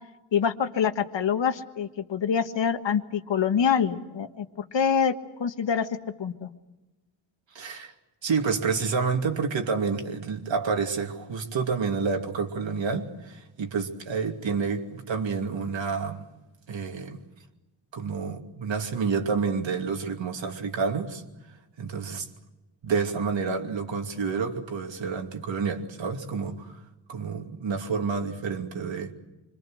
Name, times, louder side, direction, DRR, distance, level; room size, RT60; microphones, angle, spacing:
voice 1, 0.3-5.1 5.4-5.9 6.2-6.5, left 7 dB, 75° left, 8 dB, 1.6 m, -25 dB
voice 2, 7.5-7.9 8.2-16.3 16.7-17.2 17.9-21.2 21.8-22.3 22.8-26.8 27.1-29.1, right 5 dB, 80° right, 3 dB, 2.8 m, -29 dB
26.5 x 24.5 x 6.5 m, 1.0 s
wide cardioid pair, 160°, 44 cm